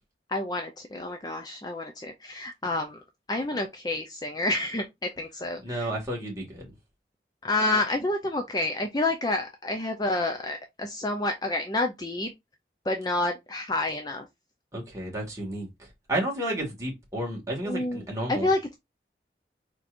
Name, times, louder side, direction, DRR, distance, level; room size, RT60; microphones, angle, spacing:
voice 1, 0.3-3.0 3.3-4.8 5.2-5.9 7.4-12.3 12.9-14.3 17.6-18.0 18.3-18.7, left 2 dB, 20° left, 0.5 m, -29 dB
voice 2, 5.6-6.7 14.7-18.5, right 1 dB, 20° right, 1.9 m, -32 dB
4.7 x 4.3 x 2.4 m
head